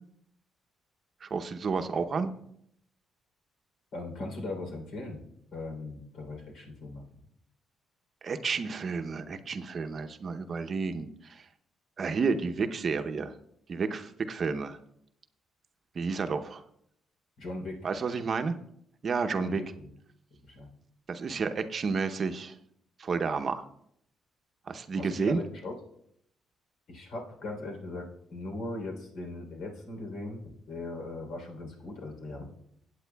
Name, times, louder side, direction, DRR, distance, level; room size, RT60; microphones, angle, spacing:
voice 1, 1.2-2.3 8.2-11.5 12.0-13.3 13.7-14.8 15.9-16.6 17.8-18.6 19.0-19.6 21.1-22.6 23.0-23.6 24.7-25.4, right 5 dB, 45° right, 8 dB, 0.7 m, -31 dB
voice 2, 3.9-5.2 5.5-7.0 17.4-18.0 19.4-19.9 20.3-20.7 25.0-25.8 26.9-32.4, left 2 dB, 75° left, 2 dB, 3.3 m, -39 dB
17.5 x 8.5 x 2.3 m, 0.72 s
cardioid pair, 90°, 0 cm